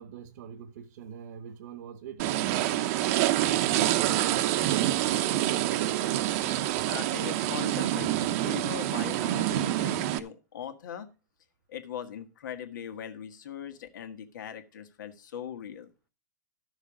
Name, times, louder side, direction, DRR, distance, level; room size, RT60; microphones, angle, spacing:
voice 1, 0.0-2.9 3.4-4.8 5.1-5.8, right 8 dB, 70° right, 1.2 m, -43 dB
sound 1, 2.2-10.2, right 13 dB, 45° right, 0.8 m, -27 dB
voice 2, 6.8-11.1 11.7-15.9, left 9 dB, 80° left, 1.7 m, -40 dB
12.5 x 6.5 x 4.9 m
supercardioid pair, 150°, 10 cm